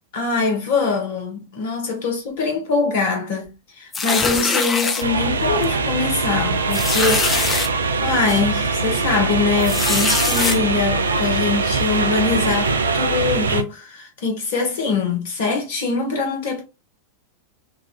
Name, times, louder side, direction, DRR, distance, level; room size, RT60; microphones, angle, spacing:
voice 1, 0.1-16.6, left 4 dB, 55° left, 1.0 m, -23 dB
sound 1, 3.9-5.0 5.6-5.8 6.1-6.2 6.7-7.7 8.3-8.4 9.6-10.6, left 4 dB, 20° left, 0.5 m, -22 dB
sound 2, 5.0-13.6, right 4 dB, 70° right, 0.3 m, -22 dB
Bicycle bell, 10.3-11.5, left 2 dB, 85° left, 1.5 m, -41 dB
3.1 x 2.4 x 2.3 m
figure-of-eight pair, 90°, 0 cm